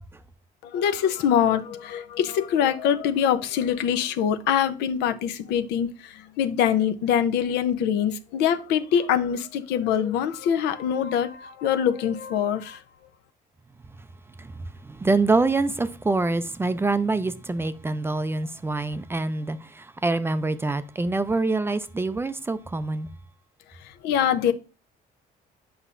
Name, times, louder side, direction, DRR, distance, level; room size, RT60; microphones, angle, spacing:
voice 1, 0.6-12.8 24.0-24.5, left 9 dB, 85° left, 0.6 m, -24 dB
voice 2, 14.8-23.1, right 3 dB, 15° right, 0.4 m, -25 dB
8.0 x 5.5 x 2.5 m
cardioid pair, 110°, 17 cm